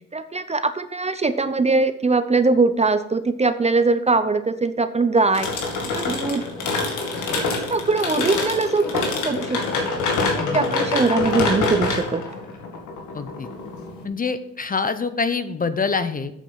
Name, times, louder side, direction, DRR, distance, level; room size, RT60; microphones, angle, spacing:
voice 1, 0.1-5.6 5.9-6.4 7.4-9.6 10.3-12.2, right 3 dB, 20° right, 11 dB, 0.6 m, -21 dB
sound 1, 5.3-14.0, left 3 dB, 80° left, 2.1 m, -25 dB
voice 2, 10.2-10.8 13.1-13.5 14.0-16.3, left 5 dB, 30° left, 11 dB, 0.8 m, -26 dB
8.4 x 7.3 x 5.6 m, 0.77 s
cardioid pair, 90°, 30 cm